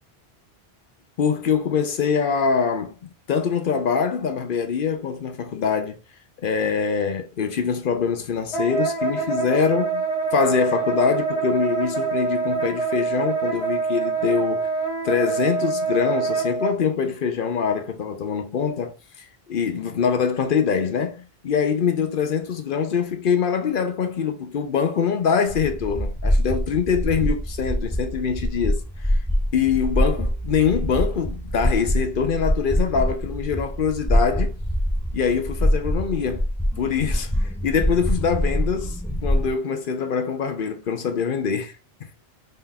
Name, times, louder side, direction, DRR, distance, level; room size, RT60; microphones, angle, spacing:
voice 1, 1.2-6.0 6.4-10.0 10.3-14.7 15.0-29.2 29.5-34.5 35.1-36.4 36.8-41.7 42.0-42.1, left 6 dB, 60° left, 0.8 m, -24 dB
Wind instrument woodwind instrument, 8.5-16.7, right 5 dB, 80° left, 1.3 m, -25 dB
sound 1, 25.5-39.5, equal, ahead, 0.6 m, -24 dB
4.0 x 3.8 x 2.3 m
omnidirectional pair, 1.1 m